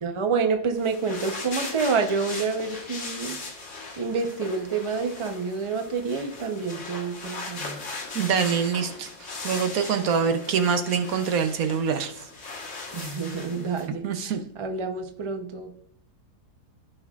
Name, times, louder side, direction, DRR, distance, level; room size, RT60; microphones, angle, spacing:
voice 1, 0.0-3.7 4.0-7.8 12.9-15.7, right 5 dB, 35° right, 5 dB, 0.4 m, -28 dB
sound 1, 0.7-13.9, left 3 dB, 50° left, 1.6 m, -38 dB
voice 2, 8.1-9.1 9.4-12.1 14.0-14.4, right 6 dB, 65° right, 7 dB, 1.1 m, -24 dB
15.5 x 5.5 x 2.4 m, 0.69 s
omnidirectional pair, 1.7 m